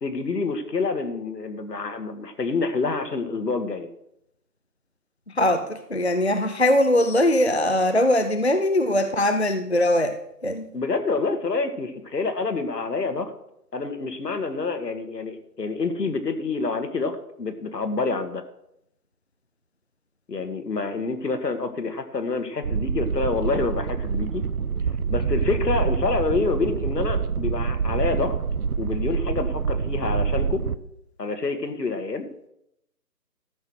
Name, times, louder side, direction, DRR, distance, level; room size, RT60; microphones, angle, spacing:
voice 1, 0.0-3.9 10.7-13.3 13.7-18.4 20.3-24.4 25.1-28.4 28.8-30.6 31.2-32.3, left 4 dB, 75° left, 8 dB, 1.9 m, -27 dB
voice 2, 5.3-10.7, left 1 dB, 45° left, 8 dB, 0.6 m, -21 dB
sound 1, 22.6-30.7, right 6 dB, 65° right, 0.7 m, -26 dB
13.5 x 6.4 x 6.4 m, 0.79 s
figure-of-eight pair, 175°, 49 cm